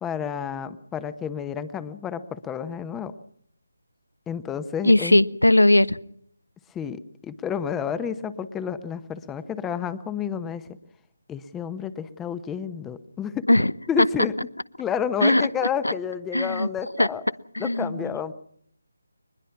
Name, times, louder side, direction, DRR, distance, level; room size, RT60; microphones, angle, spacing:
voice 1, 0.0-3.1 4.3-5.2 6.7-10.8 11.3-13.5 13.9-14.3 14.8-17.2 17.6-18.3, left 7 dB, 10° left, 13 dB, 1.0 m, -30 dB
voice 2, 4.8-6.0 13.5-13.7 15.2-15.4 15.8-15.9 16.3-16.7 17.0-17.1 17.5-18.0, left 1 dB, 90° left, 18 dB, 1.0 m, -18 dB
23.0 x 21.0 x 5.9 m, 0.68 s
figure-of-eight pair, 155°, 0 cm